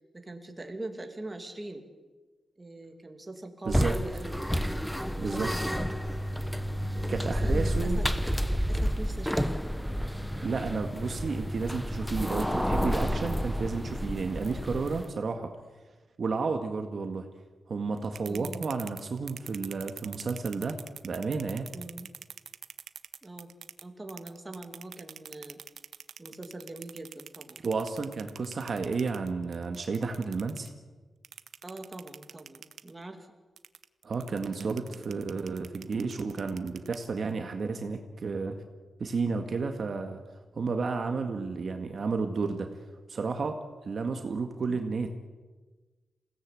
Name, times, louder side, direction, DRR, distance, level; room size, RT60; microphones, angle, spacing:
voice 1, 0.1-1.9 2.6-4.5 5.1-6.0 6.9-8.1 8.4-9.6 18.3-18.7 21.7-22.1 23.2-23.5 23.8-25.6 26.2-27.6 31.6-33.3 34.9-35.1, right 2 dB, 15° right, 4 dB, 2.5 m, -42 dB
sound 1, 3.7-15.1, equal, ahead, 0.9 m, -30 dB
voice 2, 5.2-5.5 7.1-8.0 10.4-15.5 16.2-17.3 17.7-20.8 21.0-21.7 27.6-30.7 34.0-38.6 39.0-40.2 40.5-42.7 43.1-43.6 43.8-45.1, right 4 dB, 45° right, 5 dB, 1.7 m, -32 dB
sound 2, 18.0-23.8 24.1-30.7 31.2-32.9 33.6-37.3, right 7 dB, 75° right, 0.9 m, -45 dB
27.5 x 17.5 x 8.5 m, 1.3 s
wide cardioid pair, 160°, 0 cm